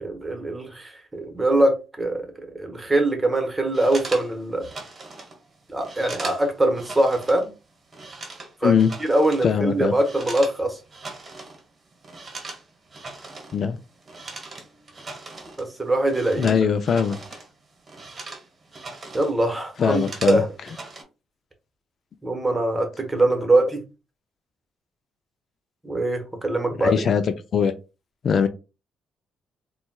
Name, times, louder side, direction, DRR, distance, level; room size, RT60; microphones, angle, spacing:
voice 1, 0.0-2.3 2.5-4.6 5.7-7.5 8.6-8.7 9.0-10.8 15.6-16.5 19.1-20.5 22.2-23.8 25.8-27.0, right 1 dB, 15° right, 1.1 m, -22 dB
sound 1, 3.7-7.5 7.7-10.6 10.9-11.6 11.9-17.5 17.8-19.3 19.6-21.0, right 3 dB, 35° right, 1.0 m, -39 dB
voice 2, 9.4-9.9 13.5-13.8 16.4-17.2 19.8-20.4 26.8-27.2 27.5-27.7 28.2-28.5, left 7 dB, 55° left, 0.3 m, -21 dB
4.0 x 2.2 x 2.2 m
cardioid pair, 90°, 0 cm